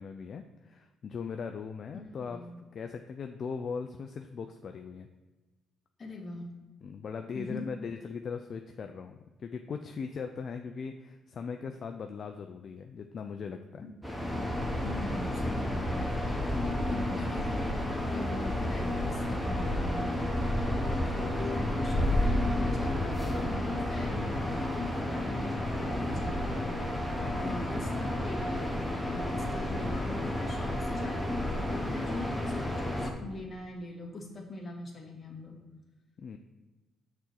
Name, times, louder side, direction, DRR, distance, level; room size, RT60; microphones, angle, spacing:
voice 1, 0.0-2.4 2.7-5.1 6.8-13.8 27.2-27.5 36.2-36.4, left 5 dB, 55° left, 6 dB, 0.4 m, -39 dB
voice 2, 2.2-2.6 6.0-6.5 7.3-7.6 13.8-13.9 14.8-35.6, left 2 dB, 35° left, -1 dB, 1.8 m, -42 dB
sound 1, 14.0-33.1, left 1 dB, ahead, 1.2 m, -31 dB
6.1 x 4.2 x 6.4 m, 1.2 s
cardioid pair, 90°, 0 cm